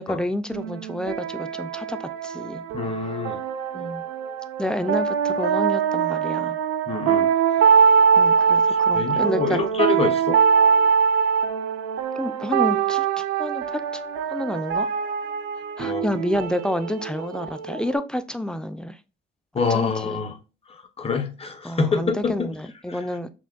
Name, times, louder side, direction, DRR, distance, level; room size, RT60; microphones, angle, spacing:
voice 1, 0.0-2.6 3.7-4.0 4.6-6.6 8.2-9.6 10.0-10.1 12.1-14.0 14.3-14.9 15.8-19.0 19.7-20.2 21.6-23.3, left 1 dB, 5° left, 0.4 m, -29 dB
sound 1, 0.5-18.0, right 7 dB, 85° right, 0.5 m, -22 dB
voice 2, 2.7-3.4 6.9-7.3 8.9-10.4 15.8-16.0 19.5-20.3 21.0-22.5, left 4 dB, 30° left, 0.8 m, -26 dB
5.9 x 2.2 x 2.4 m
cardioid pair, 90°, 20 cm